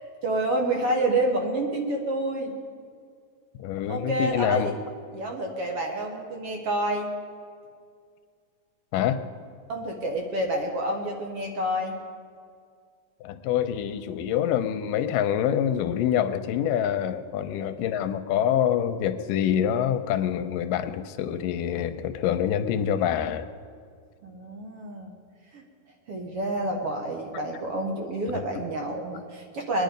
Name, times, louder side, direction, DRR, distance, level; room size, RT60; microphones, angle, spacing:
voice 1, 0.2-2.6 3.9-4.7 5.1-7.1 9.7-11.9 24.2-25.1 25.5-25.6 26.1-29.8, right 1 dB, 55° right, 1 dB, 1.8 m, -28 dB
voice 2, 3.6-4.7 8.9-9.2 13.2-23.5 28.3-28.6, left 9 dB, 85° left, 9 dB, 2.3 m, -26 dB
22.0 x 10.5 x 5.2 m, 2.2 s
omnidirectional pair, 3.8 m